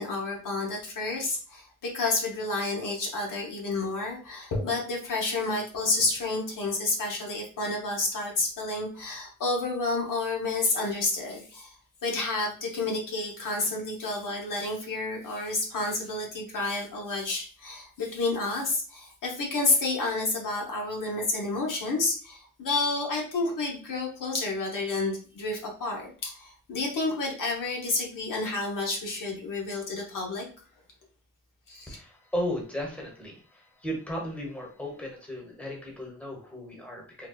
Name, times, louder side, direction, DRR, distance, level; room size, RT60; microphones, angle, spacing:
voice 1, 0.0-11.7 12.0-30.4 31.7-32.0, left 3 dB, 75° left, -1 dB, 1.0 m, -30 dB
voice 2, 31.9-37.3, equal, 5° left, -2 dB, 1.0 m, -35 dB
3.9 x 2.2 x 2.2 m, 0.40 s
cardioid pair, 100°, 32 cm